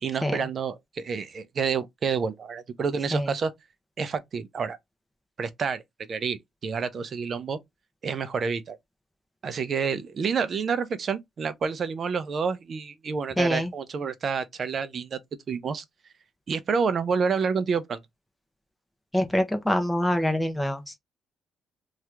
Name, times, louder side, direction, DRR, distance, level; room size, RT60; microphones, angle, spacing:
voice 1, 0.0-3.5 4.0-4.8 5.4-5.8 6.1-7.6 8.0-8.8 9.4-15.2 15.5-15.8 16.5-18.0, right 5 dB, 50° right, 0.5 m, -28 dB
voice 2, 13.4-13.7 19.1-21.0, left 1 dB, 5° left, 0.7 m, -25 dB
2.8 x 2.4 x 3.3 m
cardioid pair, 90°, 0 cm